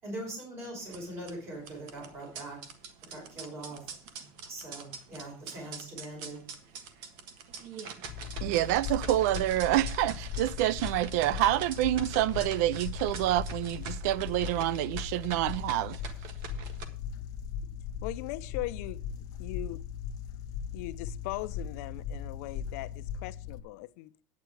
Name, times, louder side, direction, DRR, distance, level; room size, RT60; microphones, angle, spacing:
voice 1, 0.0-2.6 3.1-3.8 4.5-6.4, right 1 dB, 30° right, 6.0 m, -41 dB
sound 1, 0.8-16.8, right 6 dB, 65° right, 1.6 m, -45 dB
sound 2, 8.0-23.6, left 7 dB, 45° left, 0.9 m, -38 dB
voice 2, 8.4-16.0, right 14 dB, 85° right, 0.4 m, -27 dB
voice 3, 18.0-19.0 19.4-19.8 20.7-24.1, left 19 dB, 80° left, 0.7 m, -39 dB
9.4 x 9.3 x 4.8 m
cardioid pair, 160°, 9 cm